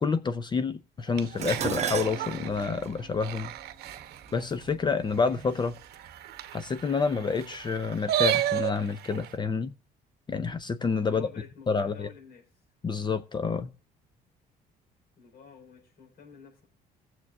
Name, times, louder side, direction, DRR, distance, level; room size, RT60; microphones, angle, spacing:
voice 1, 0.0-3.5 4.3-5.8 6.5-9.7 10.3-11.3 11.7-12.1 12.8-13.7, left 5 dB, 25° left, 0.6 m, -28 dB
sound 1, 1.1-4.3 4.7-4.8 5.0-5.1 5.3-9.3, right 12 dB, 70° right, 0.9 m, -33 dB
Dishes pots and pans, 1.4-5.8 6.7-7.1 7.4-8.3 8.5-8.6, right 8 dB, 40° right, 0.9 m, -37 dB
voice 2, 11.0-12.6 15.2-16.7, left 7 dB, 65° left, 4.2 m, -50 dB
20.5 x 7.3 x 2.3 m
cardioid pair, 110°, 17 cm